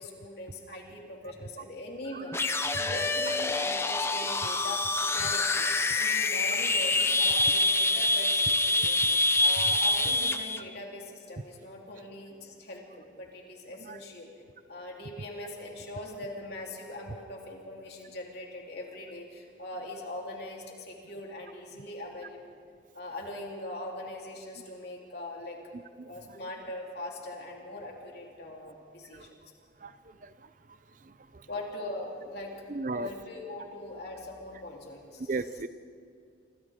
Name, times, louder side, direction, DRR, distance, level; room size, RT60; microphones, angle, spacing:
voice 1, 0.0-2.3 2.8-4.8 5.1-14.3 14.7-22.4 22.9-25.6 26.1-29.3 31.5-32.5 32.9-35.4, left 2 dB, 55° left, -2 dB, 3.7 m, -41 dB
sound 1, 2.3-10.6, left 2 dB, 15° left, 0.6 m, -26 dB
voice 2, 26.0-26.4 29.1-29.3 29.8-29.9 30.2-30.5 31.0-31.5 32.7-33.1 35.3-35.7, right 3 dB, 45° right, 13 dB, 0.6 m, -37 dB
27.0 x 25.5 x 3.8 m, 2.2 s
head